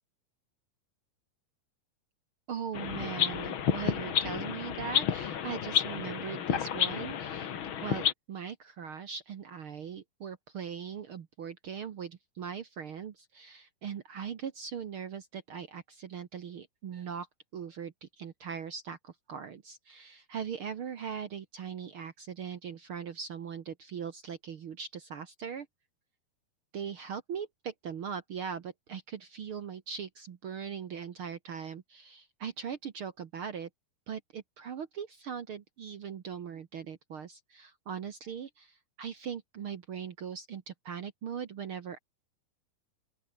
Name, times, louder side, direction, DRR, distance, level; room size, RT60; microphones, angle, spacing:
voice 1, 2.5-7.5 7.8-17.3 17.5-25.7 26.7-33.7 34.1-42.0, right 7 dB, 70° right, 1.3 m, -40 dB
sound 1, 2.7-8.1, left 8 dB, 55° left, 1.4 m, -31 dB
open air
omnidirectional pair, 4.4 m